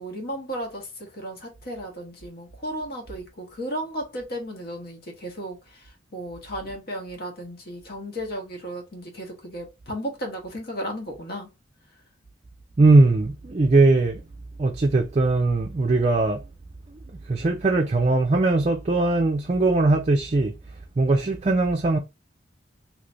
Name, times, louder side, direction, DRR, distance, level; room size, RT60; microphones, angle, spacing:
voice 1, 0.0-5.6 6.1-11.5, equal, 55° left, 1.1 m, -34 dB
voice 2, 12.8-14.2 14.6-16.4 17.3-20.5 21.0-22.0, right 2 dB, 35° right, 0.4 m, -20 dB
3.2 x 2.9 x 2.4 m
head